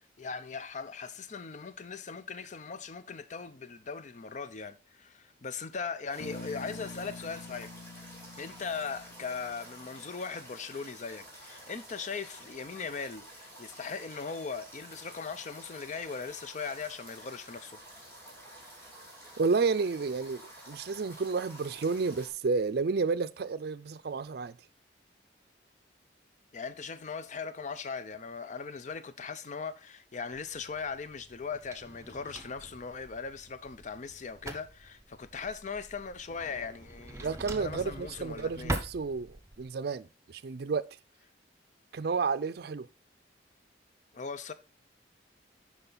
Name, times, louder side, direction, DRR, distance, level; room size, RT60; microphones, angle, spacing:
voice 1, 0.2-7.7 8.4-17.8 26.5-37.3 37.6-38.8 44.1-44.5, left 5 dB, 40° left, 0.6 m, -39 dB
sound 1, 6.1-22.3, right 1 dB, 15° left, 2.6 m, -50 dB
Bass guitar, 6.2-10.3, left 2 dB, 75° left, 1.3 m, -46 dB
voice 2, 19.4-24.6 37.2-40.9 41.9-42.9, right 4 dB, 60° right, 0.4 m, -31 dB
Drawer open or close, 30.3-39.6, right 1 dB, 15° right, 0.8 m, -43 dB
10.0 x 4.4 x 3.9 m
head